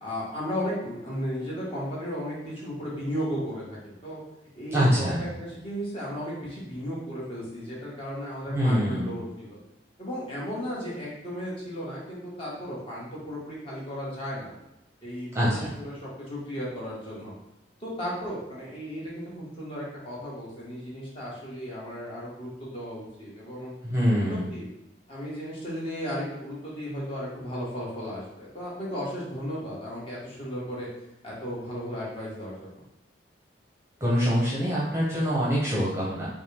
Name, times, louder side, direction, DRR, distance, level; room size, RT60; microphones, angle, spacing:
voice 1, 0.0-4.2 4.5-9.6 10.0-14.5 15.0-17.3 17.8-23.7 24.3-24.7 25.1-30.9 31.2-32.7, equal, 30° left, -7 dB, 1.6 m, -35 dB
voice 2, 4.7-5.2 8.5-9.1 15.3-15.7 23.8-24.5 34.0-36.3, equal, 15° right, -7 dB, 0.9 m, -24 dB
5.9 x 2.3 x 3.5 m, 0.91 s
head